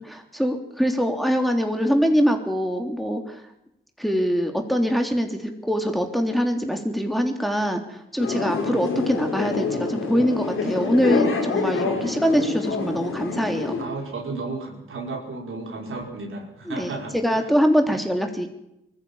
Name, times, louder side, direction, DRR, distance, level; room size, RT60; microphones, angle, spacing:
voice 1, 0.0-3.4 4.0-13.7 16.7-18.5, equal, ahead, 4 dB, 3.4 m, -23 dB
sound 1, 8.2-13.8, left 4 dB, 85° left, 4.1 m, -26 dB
voice 2, 13.8-17.5, right 3 dB, 75° right, 1 dB, 5.3 m, -33 dB
20.5 x 14.5 x 8.9 m, 0.84 s
supercardioid pair, 45°, 21 cm